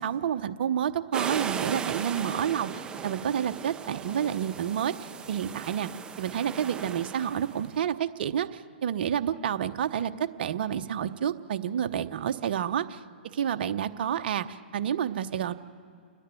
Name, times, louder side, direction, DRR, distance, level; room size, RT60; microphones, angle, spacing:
voice 1, 0.0-5.9 6.2-13.0 13.3-15.5, right 9 dB, 55° right, 9 dB, 0.8 m, -29 dB
sound 1, 1.1-7.7, right 6 dB, 15° right, 0.6 m, -37 dB
29.5 x 10.0 x 9.0 m, 2.4 s
hypercardioid pair, 135°, 6 cm